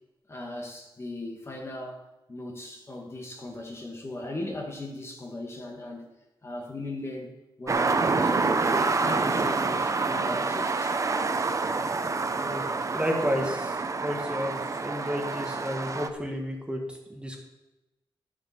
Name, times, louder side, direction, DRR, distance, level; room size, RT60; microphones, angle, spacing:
voice 1, 0.3-2.0 2.3-6.1 6.4-7.3 7.6-11.0, left 2 dB, 30° left, 1 dB, 1.9 m, -38 dB
sound 1, 7.7-16.1, right 3 dB, 35° right, 0.7 m, -27 dB
voice 2, 12.9-17.4, equal, 10° right, 1 dB, 1.8 m, -32 dB
13.0 x 7.2 x 6.0 m, 0.99 s
wide cardioid pair, 120°, 9 cm